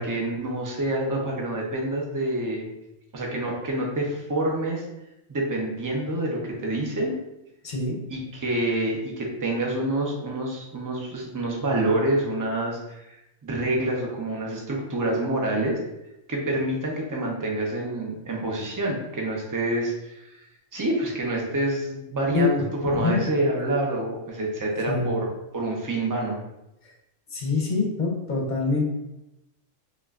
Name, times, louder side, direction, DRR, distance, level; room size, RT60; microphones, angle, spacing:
voice 1, 0.0-2.7 3.1-4.8 5.3-7.1 8.1-15.8 16.3-20.5 20.7-25.3 25.5-26.4, right 1 dB, 25° right, -2 dB, 0.5 m, -27 dB
voice 2, 7.6-8.0 22.3-22.5 23.0-23.2 24.9-25.1 27.3-28.9, left 4 dB, 45° left, 0 dB, 0.8 m, -24 dB
5.2 x 2.4 x 2.4 m, 0.89 s
omnidirectional pair, 1.2 m